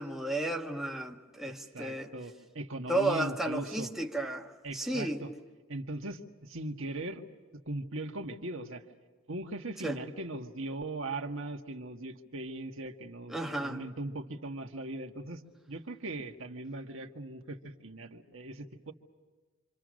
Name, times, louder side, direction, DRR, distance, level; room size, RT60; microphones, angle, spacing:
voice 1, 0.0-2.1 2.9-5.2 9.8-10.0 13.3-13.8, right 1 dB, ahead, 1.4 m, -33 dB
voice 2, 1.5-3.9 4.6-5.3 5.7-7.2 7.6-8.8 9.3-15.4 15.7-18.9, right 2 dB, 60° right, 1.8 m, -39 dB
27.5 x 27.0 x 6.5 m
head